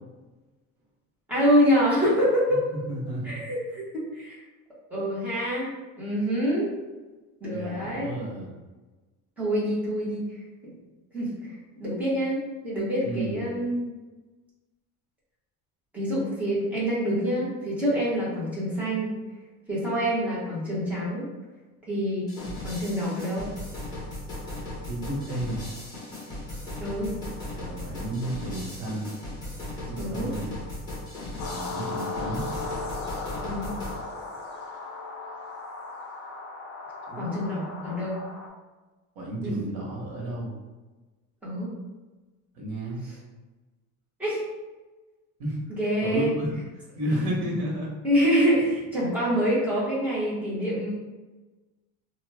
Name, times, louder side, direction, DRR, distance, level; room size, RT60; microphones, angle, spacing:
voice 1, 1.3-2.6 3.2-4.4 4.9-6.7 7.4-8.1 9.4-10.3 11.1-11.3 11.8-13.9 15.9-19.1 19.7-21.3 21.9-22.3 22.6-23.5 26.8-27.1 30.0-30.3 33.4-33.7 37.1-38.2 39.4-39.6 41.4-41.7 44.2-44.4 45.7-46.3 48.0-50.9, equal, 5° right, -9 dB, 0.9 m, -26 dB
voice 2, 2.5-3.4 7.5-8.5 13.0-13.5 24.9-25.6 27.5-29.1 29.9-30.5 31.4-32.5 37.1-37.3 39.1-40.5 42.5-43.0 45.4-45.6 46.0-46.5 46.8-47.9, right 1 dB, 80° right, -3 dB, 1.1 m, -32 dB
sound 1, 22.3-34.0, left 1 dB, 10° left, 1.2 m, -37 dB
sound 2, 31.4-38.5, left 3 dB, 45° left, 0.5 m, -36 dB
3.0 x 2.3 x 3.2 m, 1.2 s
cardioid pair, 180°, 34 cm